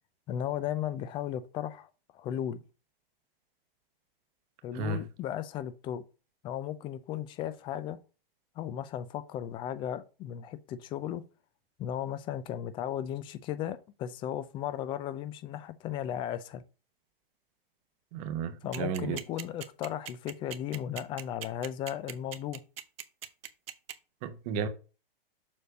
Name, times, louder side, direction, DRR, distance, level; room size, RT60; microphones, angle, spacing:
voice 1, 0.3-1.9 2.1-2.6 4.6-6.0 6.4-8.0 8.6-11.2 11.8-16.6 18.6-22.6, left 10 dB, 15° left, 0.4 m, -35 dB
voice 2, 18.1-19.2 24.2-24.7, right 6 dB, 40° right, 0.9 m, -33 dB
sound 1, 18.7-23.9, right 10 dB, 70° right, 0.9 m, -40 dB
7.0 x 3.3 x 5.1 m
hypercardioid pair, 125°, 30 cm